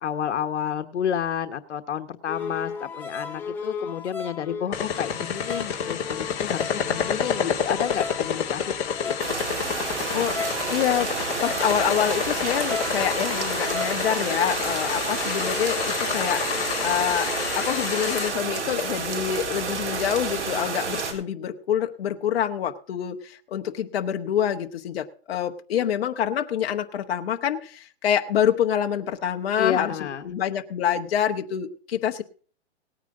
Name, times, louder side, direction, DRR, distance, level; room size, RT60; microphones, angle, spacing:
voice 1, 0.0-9.3 29.6-30.3, left 8 dB, 90° left, 10 dB, 1.2 m, -30 dB
sound 1, 2.3-17.6, left 5 dB, 5° left, 0.8 m, -37 dB
sound 2, 4.7-18.3, left 8 dB, 20° left, 2.6 m, -29 dB
sound 3, 9.2-21.1, right 5 dB, 90° right, 4.0 m, -30 dB
voice 2, 10.7-11.1 11.4-17.3 17.6-29.9 30.2-32.2, left 9 dB, 60° left, 5 dB, 1.1 m, -26 dB
18.5 x 9.3 x 3.7 m, 0.43 s
hypercardioid pair, 160°, 34 cm